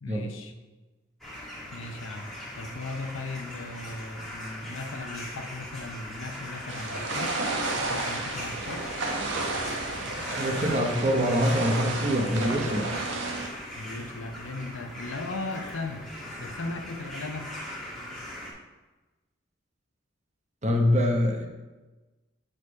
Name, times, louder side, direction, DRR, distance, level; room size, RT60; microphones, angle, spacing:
voice 1, 0.0-0.5 1.7-2.3 2.6-7.3 7.9-8.8 13.7-16.0 16.4-17.5, left 2 dB, 80° left, 6 dB, 0.8 m, -37 dB
sound 1, 1.2-18.5, left 1 dB, ahead, 1.8 m, -40 dB
sound 2, 6.7-13.5, right 2 dB, 65° right, 1.1 m, -32 dB
voice 2, 10.3-12.9 20.6-21.5, equal, 35° right, 3 dB, 0.9 m, -24 dB
6.7 x 5.0 x 4.9 m, 1.2 s
head